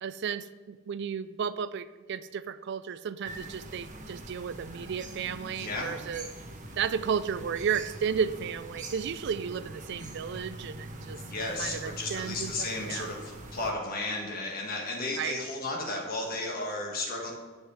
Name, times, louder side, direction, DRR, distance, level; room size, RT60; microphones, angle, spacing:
voice 1, 0.0-6.3 6.8-11.2 11.6-13.0 15.2-15.4, right 7 dB, 50° right, 14 dB, 0.3 m, -33 dB
sound 1, 3.2-13.7, right 1 dB, 35° right, 1.0 m, -44 dB
voice 2, 5.4-6.0 11.0-17.3, left 2 dB, 45° left, 0 dB, 1.4 m, -34 dB
9.8 x 5.4 x 6.0 m, 1.3 s
head